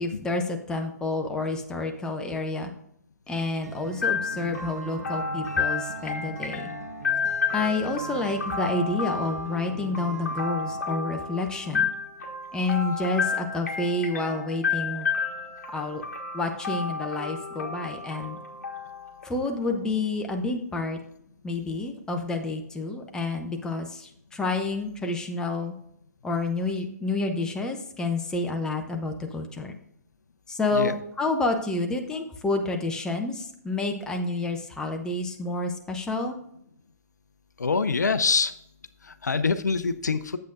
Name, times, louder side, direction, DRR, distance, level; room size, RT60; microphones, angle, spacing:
voice 1, 0.0-2.7 3.3-6.7 7.5-11.9 12.5-15.1 15.7-16.0 16.3-18.4 19.2-21.0 21.4-25.7 26.2-29.7 30.5-36.4, left 3 dB, 5° left, 3 dB, 0.7 m, -29 dB
Acoustic guitar, 3.6-10.8, right 7 dB, 60° right, 0.8 m, -42 dB
sound 1, 4.0-19.8, left 5 dB, 60° left, 1.4 m, -31 dB
voice 2, 37.6-38.5 39.0-40.4, left 4 dB, 80° left, 11 dB, 0.5 m, -25 dB
8.3 x 7.6 x 2.5 m, 0.74 s
figure-of-eight pair, 130°, 9 cm